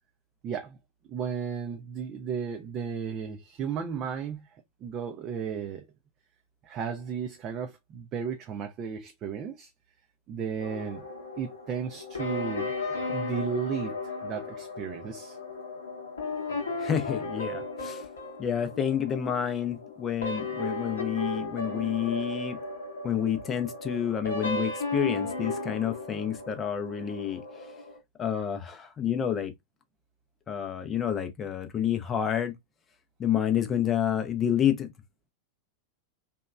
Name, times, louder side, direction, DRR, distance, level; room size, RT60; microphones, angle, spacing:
voice 1, 0.4-0.8 1.1-4.4 4.8-5.8 6.6-9.7 10.3-11.0 11.4-12.7 13.1-14.0 14.2-15.4, right 7 dB, 35° right, 0.4 m, -34 dB
sound 1, 10.6-28.0, left 2 dB, 70° left, 0.8 m, -35 dB
voice 2, 16.8-18.0 18.4-22.6 23.0-27.4 28.2-29.5 30.5-32.5 33.2-34.9, left 9 dB, 25° left, 0.5 m, -29 dB
2.9 x 2.2 x 2.2 m
figure-of-eight pair, 90°, 0 cm